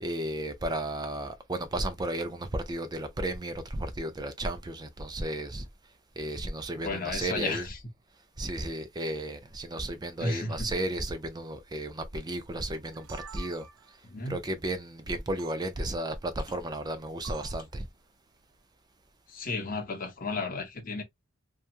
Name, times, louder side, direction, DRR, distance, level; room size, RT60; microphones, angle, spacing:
voice 1, 0.0-5.7 6.2-7.7 8.4-13.7 14.3-17.9, right 1 dB, 20° right, 0.4 m, -33 dB
voice 2, 6.8-7.8 10.2-10.7 14.0-14.4 19.3-21.0, left 3 dB, 40° left, 0.7 m, -33 dB
sound 1, 12.7-14.0 15.4-15.6 17.2-17.7, right 7 dB, 70° right, 0.5 m, -47 dB
2.9 x 2.3 x 2.4 m
head